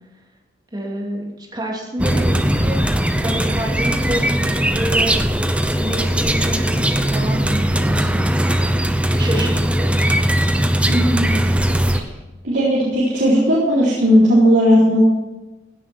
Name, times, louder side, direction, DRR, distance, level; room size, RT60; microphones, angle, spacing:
voice 1, 0.7-2.8 3.2-5.1 5.7-8.7 9.2-10.0, right 1 dB, 25° right, -1 dB, 2.9 m, -28 dB
sound 1, 2.0-12.0, right 1 dB, 5° right, 0.7 m, -19 dB
voice 2, 10.9-11.4 12.4-15.0, equal, 75° right, -8 dB, 4.1 m, -16 dB
16.5 x 10.0 x 4.5 m, 1.1 s
head